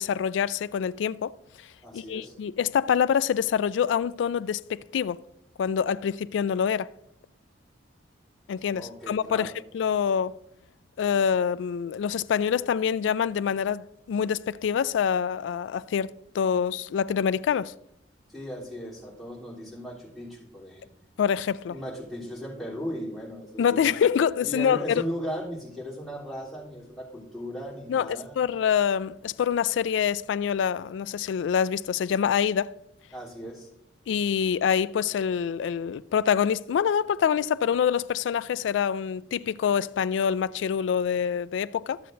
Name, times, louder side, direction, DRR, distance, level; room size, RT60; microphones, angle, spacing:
voice 1, 0.0-1.3 1.9-5.2 5.6-6.9 8.5-10.4 11.0-17.7 21.2-21.8 23.6-25.0 27.9-32.7 34.1-42.0, left 7 dB, 80° left, 0.3 m, -26 dB
voice 2, 1.8-2.3 8.7-9.5 18.3-20.9 21.7-23.9 24.4-28.4 33.1-33.7, equal, ahead, 3.3 m, -37 dB
13.5 x 7.6 x 2.6 m
head